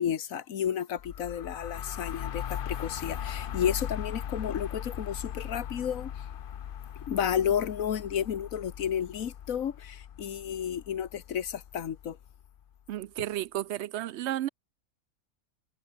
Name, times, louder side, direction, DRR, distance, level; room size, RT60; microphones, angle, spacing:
voice 1, 0.0-6.1 7.1-12.2, left 9 dB, 70° left, 1.5 m, -32 dB
sound 1, 1.0-12.6, left 9 dB, 55° left, 0.6 m, -39 dB
voice 2, 12.9-14.5, right 13 dB, 65° right, 0.7 m, -32 dB
omnidirectional pair, 1.5 m